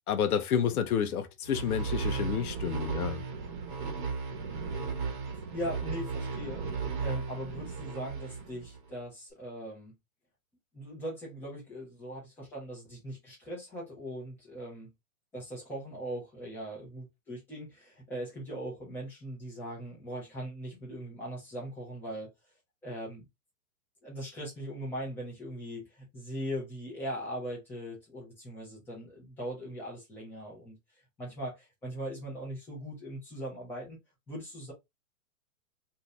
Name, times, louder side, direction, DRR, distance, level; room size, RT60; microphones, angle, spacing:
voice 1, 0.1-3.2, left 8 dB, 80° left, 0.8 m, -30 dB
sound 1, 1.4-8.9, right 5 dB, 35° right, 1.0 m, -35 dB
voice 2, 5.5-6.6 7.0-9.9 10.7-14.9 15.3-22.3 22.8-23.2 24.0-30.8 31.2-34.0 34.3-34.7, equal, 5° left, 0.8 m, -40 dB
2.8 x 2.6 x 3.2 m
hypercardioid pair, 165°, 43 cm